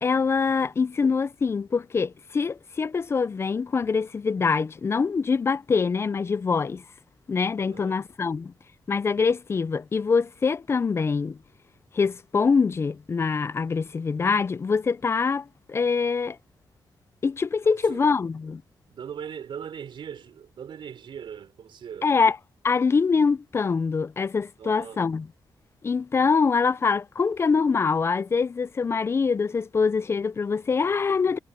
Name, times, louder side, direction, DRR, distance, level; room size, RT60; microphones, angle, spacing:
voice 1, 0.0-6.8 7.3-8.5 8.9-11.4 11.9-16.4 17.2-18.6 22.0-22.4 22.6-25.3 25.8-31.4, left 5 dB, 30° left, 0.4 m, -24 dB
voice 2, 7.6-8.0 17.6-18.1 18.9-22.1 24.6-25.0, right 8 dB, 70° right, 3.7 m, -40 dB
wide cardioid pair, 140°, 9 cm